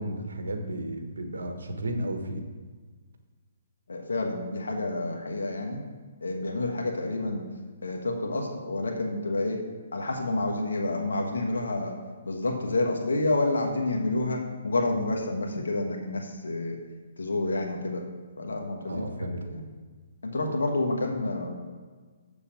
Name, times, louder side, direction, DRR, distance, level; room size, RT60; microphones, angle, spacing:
voice 1, 0.0-2.4 18.9-19.4, right 1 dB, 80° right, 5 dB, 1.4 m, -33 dB
voice 2, 3.9-5.8 6.2-7.5 7.8-9.6 9.9-11.9 12.2-16.8 17.2-18.0 18.4-19.0 19.5-19.7 20.2-21.5, left 2 dB, 85° left, 2 dB, 1.4 m, -29 dB
7.1 x 6.9 x 5.2 m, 1.5 s
hypercardioid pair, 145°, 0 cm